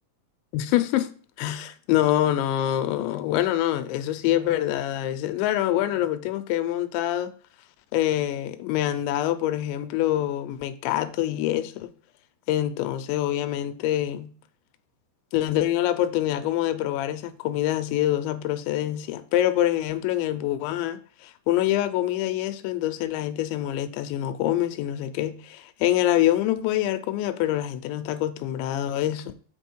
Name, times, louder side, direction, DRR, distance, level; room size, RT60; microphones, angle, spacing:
voice 1, 0.5-1.1 1.4-7.3 7.9-11.9 12.5-14.3 15.3-29.3, left 13 dB, 80° left, 2.8 m, -25 dB
7.6 x 5.3 x 4.5 m
omnidirectional pair, 5.5 m